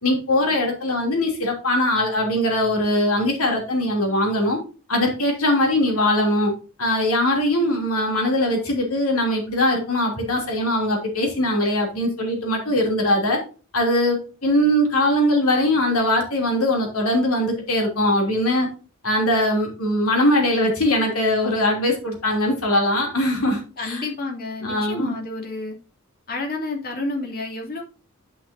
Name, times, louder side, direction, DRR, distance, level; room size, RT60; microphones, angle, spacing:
voice 1, 0.0-4.6 4.9-6.5 6.8-13.4 13.7-18.7 19.0-24.0 24.6-25.1, left 1 dB, 75° left, 1 dB, 3.0 m, -21 dB
voice 2, 23.8-25.8 26.3-27.8, left 2 dB, 45° left, 0 dB, 3.0 m, -30 dB
10.5 x 6.0 x 2.8 m, 0.35 s
head